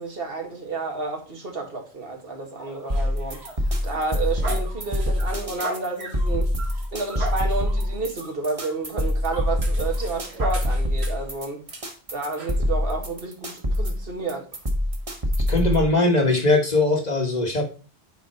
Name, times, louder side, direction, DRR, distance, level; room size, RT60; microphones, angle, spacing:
voice 1, 0.0-3.4 3.8-6.5 6.9-11.6 12.1-14.5, right 3 dB, 65° right, 1.9 m, -30 dB
sound 1, 2.6-11.3 11.7-11.8 12.4-12.6, right 2 dB, 85° right, 1.9 m, -38 dB
sound 2, 2.9-15.9, left 1 dB, 35° right, 1.3 m, -25 dB
voice 2, 15.5-17.6, left 2 dB, 40° left, 1.4 m, -20 dB
9.5 x 4.0 x 4.2 m
omnidirectional pair, 1.1 m